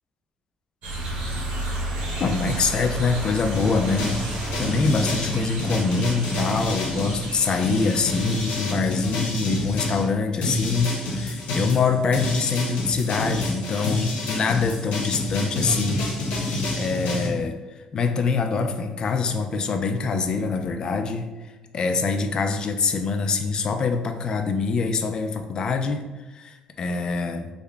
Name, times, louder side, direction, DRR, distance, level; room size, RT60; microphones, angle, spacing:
sound 1, 0.8-8.6, right 1 dB, 75° right, 1.1 m, -32 dB
voice 1, 2.2-4.2 4.6-16.0 16.8-17.6 17.9-21.3 21.7-27.5, left 4 dB, 35° left, 7 dB, 0.3 m, -24 dB
sound 2, 3.6-10.0 10.4-17.3, left 2 dB, 85° left, 0.8 m, -28 dB
3.7 x 2.1 x 3.4 m, 1.2 s
cardioid pair, 145°, 2 cm